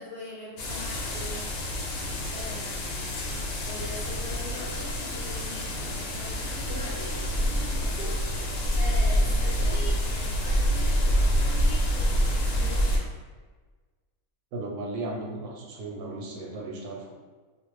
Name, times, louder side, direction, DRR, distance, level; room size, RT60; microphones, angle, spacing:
voice 1, 0.0-1.5 2.0-2.8 3.6-13.0, left 1 dB, 60° left, -5 dB, 0.8 m, -42 dB
sound 1, 0.6-13.0, equal, 85° left, 1.1 m, -27 dB
sound 2, 4.4-9.7, right 4 dB, 60° right, 0.6 m, -47 dB
voice 2, 14.5-17.1, right 2 dB, 85° right, 0 dB, 1.1 m, -35 dB
2.6 x 2.2 x 2.9 m, 1.4 s
omnidirectional pair, 1.6 m